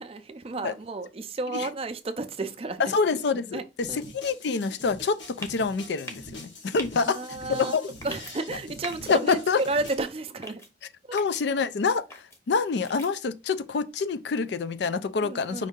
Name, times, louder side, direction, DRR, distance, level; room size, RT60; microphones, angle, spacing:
voice 1, 0.0-3.0 3.5-3.6 3.9-4.0 7.1-7.8 8.0-10.6 11.1-11.2 15.2-15.7, right 2 dB, 30° right, 0.4 m, -32 dB
voice 2, 2.8-7.2 7.5-7.8 9.1-9.6 11.1-15.7, left 5 dB, 70° left, 0.4 m, -26 dB
sound 1, 3.8-10.0, left 1 dB, 85° left, 1.6 m, -44 dB
sound 2, 5.4-5.6 6.0-6.3 6.8-6.9 8.0-8.3 8.8-9.1 9.6-9.9 10.4-10.7 11.2-11.4 12.1-12.4 12.8-13.1, left 1 dB, 15° left, 0.8 m, -40 dB
5.1 x 2.7 x 3.6 m
head